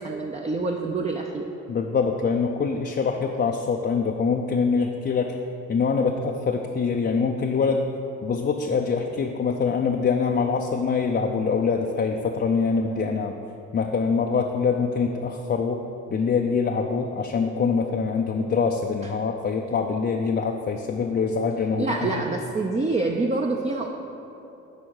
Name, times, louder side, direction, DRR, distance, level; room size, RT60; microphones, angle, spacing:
voice 1, 0.0-1.5 19.0-19.1 21.8-23.9, right 3 dB, 20° right, 1 dB, 0.6 m, -26 dB
voice 2, 1.7-5.4 5.7-7.9 8.2-13.4 13.7-22.2, left 5 dB, 35° left, 2 dB, 0.5 m, -24 dB
10.5 x 3.7 x 6.4 m, 2.9 s
cardioid pair, 90°, 30 cm